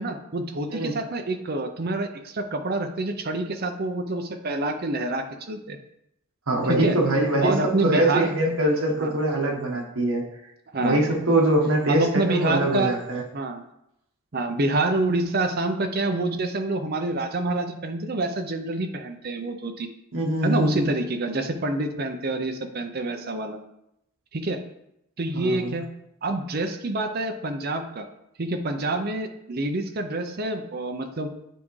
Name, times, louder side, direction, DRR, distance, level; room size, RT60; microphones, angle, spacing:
voice 1, 0.0-5.8 6.7-7.0 7.4-8.3 9.0-9.1 10.7-11.0 11.9-12.9 13.3-13.6 14.3-19.9 20.4-23.6 24.3-24.6 25.2-25.9 26.2-28.0 28.4-31.3, right 2 dB, 45° right, 6 dB, 0.6 m, -27 dB
voice 2, 6.5-7.5 7.8-10.2 10.8-13.2 20.1-20.9 25.3-25.8, right 1 dB, 75° right, -1 dB, 1.3 m, -23 dB
9.3 x 3.6 x 3.2 m, 0.82 s
head